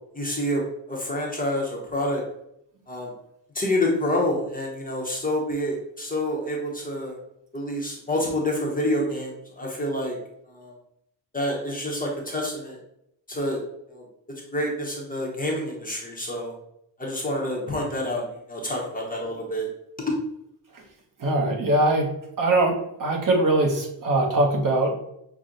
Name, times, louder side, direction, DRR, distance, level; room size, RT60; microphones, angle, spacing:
voice 1, 0.1-0.6 0.9-2.2 2.9-3.1 3.5-7.2 7.5-10.2 10.5-10.7 11.3-12.8 13.3-13.6 13.9-14.0 14.5-16.5 17.0-19.7 20.1-20.2, left 1 dB, 20° left, -2 dB, 0.7 m, -27 dB
voice 2, 21.2-22.1 22.4-24.9, right 2 dB, 45° right, 1 dB, 0.9 m, -22 dB
5.9 x 2.1 x 3.8 m, 0.77 s
cardioid pair, 165°, 47 cm